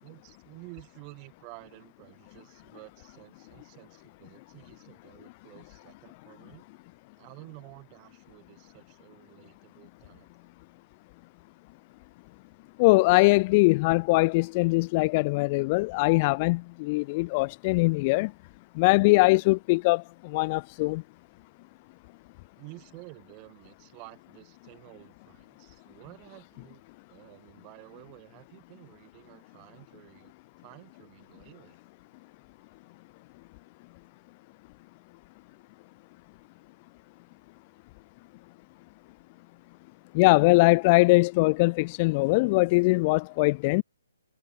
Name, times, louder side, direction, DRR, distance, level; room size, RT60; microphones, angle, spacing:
voice 1, 0.0-6.6 7.2-10.3 22.6-26.8 27.1-30.3 30.6-31.8, right 36 dB, 25° right, 5.9 m, -51 dB
voice 2, 12.8-18.3 18.8-21.0 40.1-43.8, left 25 dB, 30° left, 0.4 m, -22 dB
figure-of-eight pair, 130°, 0 cm